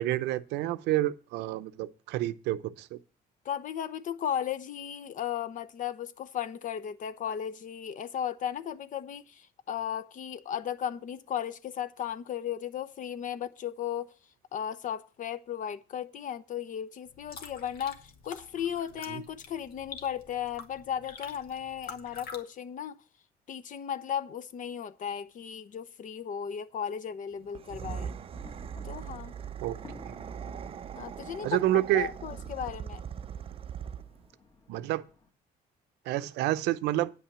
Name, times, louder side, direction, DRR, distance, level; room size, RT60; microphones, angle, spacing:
voice 1, 0.0-3.0 19.1-19.2 29.6-30.2 31.4-32.1 34.7-35.0 36.1-37.1, right 15 dB, 85° right, 0.6 m, -29 dB
voice 2, 3.4-14.1 14.5-23.0 23.5-28.1 28.8-29.3 31.0-31.7 31.9-33.0, left 9 dB, 50° left, 0.8 m, -35 dB
sound 1, 17.1-22.4, left 5 dB, 70° left, 1.6 m, -47 dB
sound 2, 27.5-34.3, right 8 dB, 35° right, 0.5 m, -40 dB
sound 3, 28.3-35.3, left 3 dB, 25° left, 1.7 m, -55 dB
9.4 x 5.7 x 7.3 m
cardioid pair, 110°, 17 cm